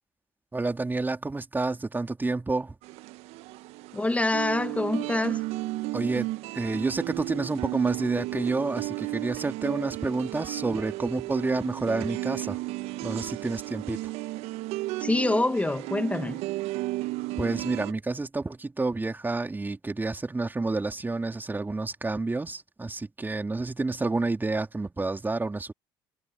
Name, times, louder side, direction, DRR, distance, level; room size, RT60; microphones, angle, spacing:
voice 1, 0.5-2.7 5.9-12.6 13.0-14.1 17.4-25.7, right 3 dB, 15° right, 3.4 m, -29 dB
sound 1, 2.8-17.9, right 20 dB, 65° right, 1.7 m, -34 dB
voice 2, 3.9-5.4 15.0-16.4, left 2 dB, 10° left, 2.3 m, -26 dB
hypercardioid pair, 65°, 11 cm